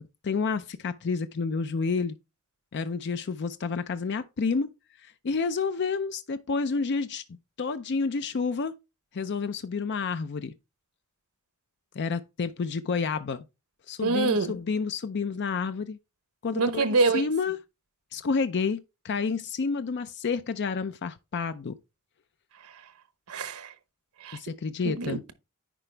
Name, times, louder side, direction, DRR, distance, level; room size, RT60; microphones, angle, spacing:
voice 1, 0.2-2.2 2.7-4.7 5.0-7.2 7.6-8.7 9.1-10.5 12.0-13.4 13.9-16.0 16.4-17.6 18.1-18.8 19.0-21.8 24.3-25.2, left 4 dB, 50° left, 0.5 m, -29 dB
voice 2, 14.0-14.6 16.5-17.2 22.6-22.8 23.3-23.7 24.2-24.4 24.8-25.3, right 3 dB, 85° right, 0.9 m, -26 dB
9.9 x 4.7 x 3.3 m
head